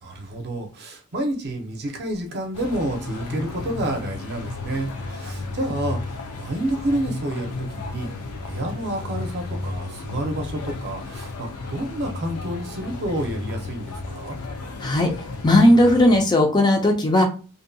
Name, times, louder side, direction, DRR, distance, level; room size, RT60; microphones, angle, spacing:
voice 1, 0.0-8.1 8.4-14.3, right 1 dB, 45° right, 3 dB, 0.6 m, -29 dB
sound 1, 2.5-16.2, left 2 dB, 75° left, 0.5 m, -33 dB
voice 2, 14.8-15.1 15.4-17.2, left 1 dB, 20° left, 3 dB, 0.4 m, -16 dB
2.6 x 2.2 x 2.6 m, 0.34 s
head